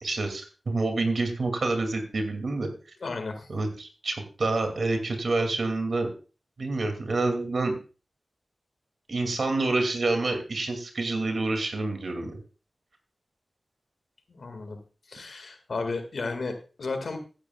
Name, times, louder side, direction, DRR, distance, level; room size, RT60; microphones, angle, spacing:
voice 1, 0.0-2.7 3.5-6.1 6.6-7.8 9.1-12.4, right 3 dB, 75° right, 5 dB, 2.4 m, -28 dB
voice 2, 3.0-3.5 14.3-14.8 15.1-17.2, left 3 dB, 75° left, 7 dB, 1.9 m, -33 dB
15.0 x 10.0 x 2.4 m, 0.34 s
cardioid pair, 40°, 0 cm